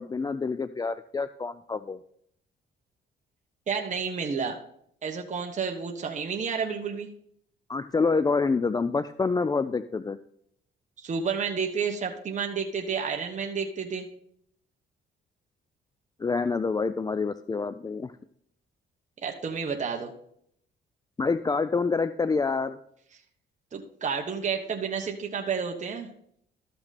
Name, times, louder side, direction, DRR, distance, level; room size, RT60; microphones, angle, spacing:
voice 1, 0.0-2.0 7.7-10.2 16.2-18.1 21.2-22.8, left 4 dB, 20° left, 13 dB, 0.3 m, -27 dB
voice 2, 3.7-4.6 5.0-7.1 11.0-14.1 19.2-20.1 23.7-26.1, right 6 dB, 35° right, 2 dB, 1.2 m, -30 dB
13.5 x 5.9 x 4.2 m, 0.69 s
cardioid pair, 90°, 20 cm